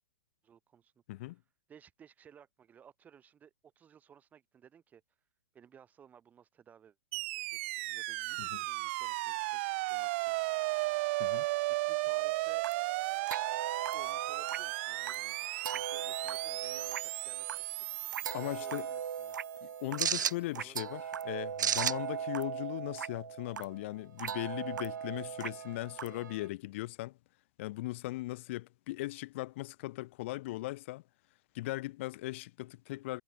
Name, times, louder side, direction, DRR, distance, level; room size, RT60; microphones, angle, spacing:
voice 1, 0.4-1.3 1.7-5.0 5.5-7.0 7.4-9.6 9.9-10.4 11.7-12.6 13.9-17.9 18.4-19.4 20.2-21.0, right 8 dB, 15° right, 4.5 m, -59 dB
sound 1, 7.1-19.4, right 23 dB, 40° right, 0.4 m, -35 dB
sound 2, 12.2-26.5, right 8 dB, 80° right, 1.0 m, -38 dB
voice 2, 18.3-18.9 19.6-27.2 27.6-31.0 31.5-33.2, left 18 dB, 40° left, 0.3 m, -38 dB
hypercardioid pair, 140°, 10 cm